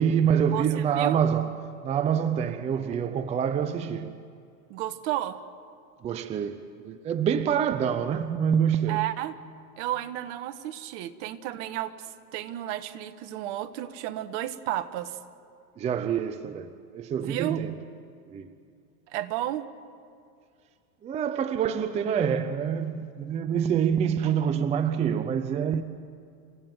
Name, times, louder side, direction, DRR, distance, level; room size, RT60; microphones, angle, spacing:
voice 1, 0.0-4.2 6.0-9.1 15.8-17.7 18.3-18.5 21.0-25.8, right 8 dB, 15° right, 0.5 m, -26 dB
voice 2, 0.5-1.2 4.7-5.4 8.9-9.3 9.8-15.2 17.2-17.6 19.1-19.7, right 13 dB, 45° right, 1.5 m, -32 dB
29.5 x 16.0 x 9.2 m
hypercardioid pair, 125°, 46 cm